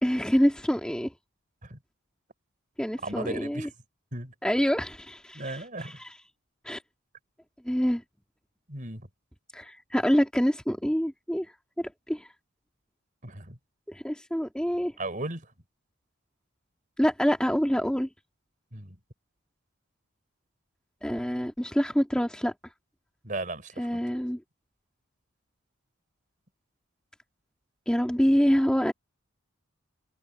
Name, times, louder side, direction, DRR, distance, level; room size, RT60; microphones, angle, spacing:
voice 1, 0.0-1.1 2.8-3.7 4.4-6.1 6.6-6.8 7.6-8.0 9.5-11.5 11.8-12.3 13.9-14.9 17.0-18.1 21.0-22.5 23.8-24.4 27.9-28.9, equal, 5° left, 2.1 m, -26 dB
voice 2, 3.0-3.7 4.1-4.3 5.3-6.0 8.7-9.1 13.2-13.6 15.0-15.5 18.7-19.0 23.2-23.9, right 2 dB, 40° right, 5.7 m, -36 dB
head